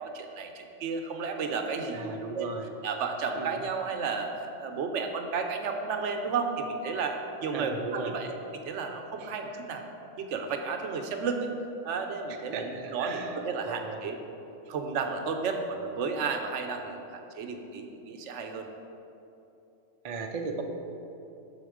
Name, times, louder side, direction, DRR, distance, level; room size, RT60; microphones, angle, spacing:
voice 1, 0.0-2.5 2.8-9.8 10.2-11.5 11.8-14.2 14.7-18.7, right 4 dB, 80° right, 5 dB, 0.9 m, -33 dB
voice 2, 1.9-2.7 3.4-3.6 7.5-8.2 9.2-9.3 12.5-13.4 13.6-14.0 14.6-14.7 20.0-20.6, right 4 dB, 55° right, 2 dB, 0.4 m, -36 dB
6.4 x 4.1 x 4.9 m, 2.8 s
omnidirectional pair, 1.2 m